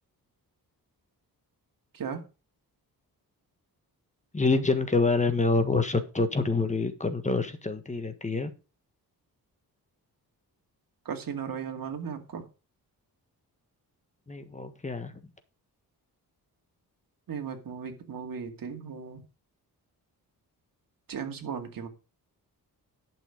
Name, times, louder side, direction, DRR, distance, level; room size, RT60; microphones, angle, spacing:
voice 1, 4.3-8.5 14.3-15.1, left 3 dB, 20° left, 9 dB, 1.4 m, -26 dB
voice 2, 11.0-12.5 17.3-19.2 21.1-21.9, right 6 dB, 65° right, 4 dB, 2.3 m, -36 dB
11.0 x 6.3 x 5.2 m, 0.33 s
wide cardioid pair, 120°, 37 cm